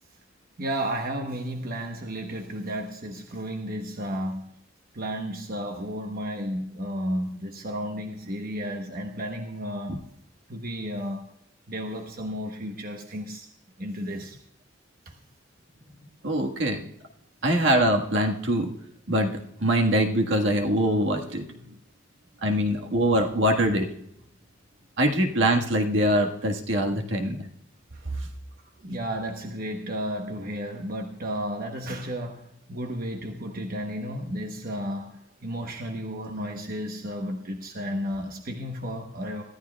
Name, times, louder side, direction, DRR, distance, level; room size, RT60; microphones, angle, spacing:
voice 1, 0.6-4.5 4.9-10.0 10.5-11.2 11.7-13.5 13.8-14.4 27.9-28.3 28.8-39.4, equal, 50° right, 3 dB, 1.1 m, -33 dB
voice 2, 16.2-16.9 17.4-18.7 19.1-19.3 19.6-21.7 22.4-23.9 25.0-27.4, right 1 dB, 70° right, 3 dB, 1.6 m, -23 dB
24.5 x 13.0 x 2.3 m, 0.75 s
head